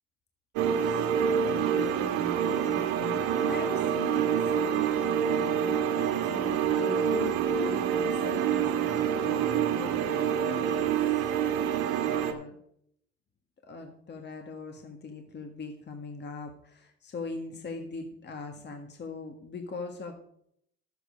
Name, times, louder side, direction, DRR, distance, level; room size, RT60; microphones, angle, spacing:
sound 1, 0.6-12.3, right 8 dB, 90° right, 1.7 m, -27 dB
voice 1, 0.7-1.1 1.4-11.1 12.0-12.6 13.7-20.1, left 4 dB, 35° left, 4 dB, 1.6 m, -41 dB
12.0 x 8.1 x 5.1 m, 0.70 s
cardioid pair, 105°, 32 cm